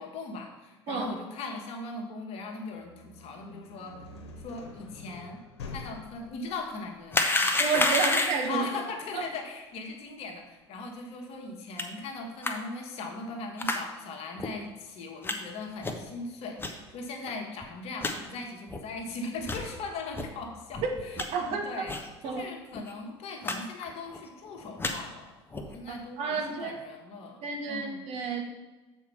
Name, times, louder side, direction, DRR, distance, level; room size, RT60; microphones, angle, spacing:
voice 1, 0.0-4.0 4.4-5.4 5.7-7.7 8.5-21.9 22.2-25.3 25.7-28.0, left 3 dB, 45° left, 2 dB, 1.3 m, -39 dB
sound 1, 2.7-12.5, left 3 dB, 70° left, 1.2 m, -48 dB
sound 2, 7.1-8.6 11.8-11.9 12.4-12.5 13.6-13.8 14.4-14.5 15.2-15.4 15.8-16.1 16.6-16.7 17.3-17.4 17.6-17.7 18.0-18.1 18.7-18.8 19.4-19.6 20.1-20.3 20.7-21.3 21.9-22.1 22.4-22.5 22.7-22.9 23.4-23.6 23.8-24.2 24.6-24.9 25.5-25.8, left 2 dB, 15° left, 0.9 m, -29 dB
voice 2, 7.6-8.7 9.1-9.2 21.3-21.8 22.2-22.4 26.2-26.8 27.4-28.4, right 5 dB, 45° right, 3 dB, 1.2 m, -30 dB
7.3 x 4.6 x 5.7 m, 1.2 s
figure-of-eight pair, 65°, 14 cm